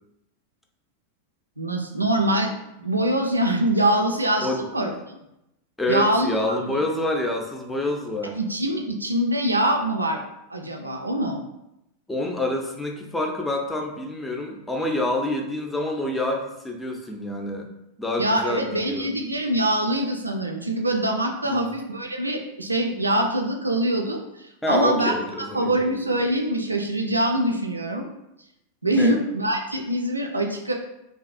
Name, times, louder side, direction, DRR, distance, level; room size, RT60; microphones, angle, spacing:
voice 1, 1.6-2.5 2.8-5.2 5.9-6.3 6.6-6.8 8.4-10.2 10.5-11.4 18.2-25.1 25.5-28.1 28.8-30.7, right 1 dB, 85° right, 2 dB, 0.3 m, -24 dB
voice 2, 4.4-4.9 5.8-8.4 12.1-17.7 18.0-19.1 21.4-21.7 24.6-25.8 28.9-29.2, left 1 dB, 5° left, 1 dB, 0.4 m, -27 dB
2.6 x 2.3 x 2.4 m, 0.86 s
figure-of-eight pair, 90°, 0 cm